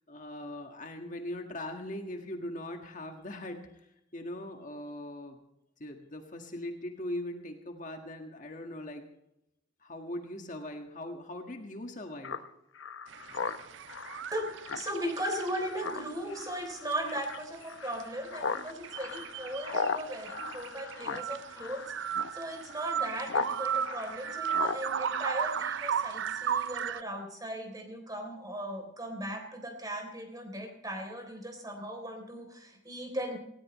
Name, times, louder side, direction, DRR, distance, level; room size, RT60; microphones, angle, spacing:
voice 1, 0.1-3.9 4.1-5.4 5.8-9.0 9.8-12.4, left 1 dB, 40° left, 4 dB, 1.7 m, -40 dB
Speech synthesizer, 12.2-23.5 23.8-26.1, left 4 dB, 80° left, 0.9 m, -38 dB
sound 1, 13.1-15.9 16.2-16.3 16.7-16.9 17.2-17.3 17.5-17.6 18.0-27.0, right 8 dB, 65° right, 0.4 m, -35 dB
voice 2, 14.3-33.4, right 1 dB, 20° right, 4 dB, 3.4 m, -38 dB
18.5 x 17.5 x 3.1 m, 0.83 s
head